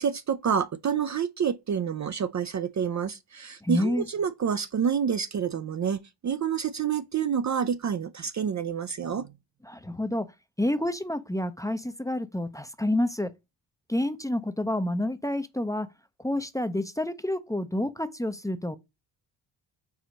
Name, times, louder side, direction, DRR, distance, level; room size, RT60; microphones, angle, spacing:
voice 1, 0.0-9.3, right 7 dB, 35° right, 0.5 m, -28 dB
voice 2, 3.6-4.0 9.7-10.3 10.6-13.3 13.9-15.9 16.2-18.8, left 1 dB, 5° left, 0.6 m, -29 dB
4.8 x 4.0 x 5.0 m
hypercardioid pair, 40°, 50 cm